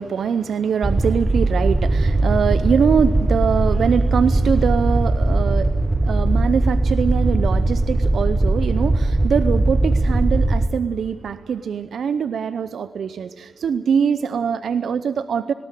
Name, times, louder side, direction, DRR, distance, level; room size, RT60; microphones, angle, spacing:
voice 1, 0.0-15.5, right 7 dB, 85° right, 13 dB, 0.6 m, -23 dB
sound 1, 0.8-10.7, right 2 dB, 25° right, 1.5 m, -19 dB
19.5 x 18.0 x 9.1 m, 1.2 s
cardioid pair, 75°, 0 cm